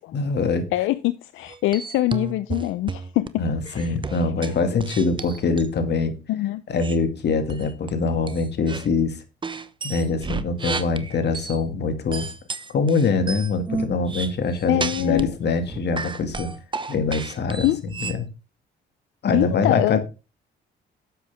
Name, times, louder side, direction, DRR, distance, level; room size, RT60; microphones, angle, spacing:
voice 1, 0.1-0.7 3.4-6.1 6.7-9.2 9.8-12.3 12.7-16.5 16.9-18.3 19.2-20.0, left 4 dB, 60° left, 2.2 m, -24 dB
voice 2, 0.7-3.4 3.7-3.8 4.4-4.8 6.3-6.6 14.7-15.3 17.6-17.8 19.3-20.0, left 16 dB, 85° left, 0.5 m, -24 dB
sound 1, 1.4-3.3 3.6-5.7 6.8-7.0 7.5-7.9 8.3-8.9 9.4-11.6 12.1-15.3 15.6-18.2, right 4 dB, 25° right, 0.9 m, -32 dB
11.5 x 8.0 x 3.5 m
cardioid pair, 90°, 20 cm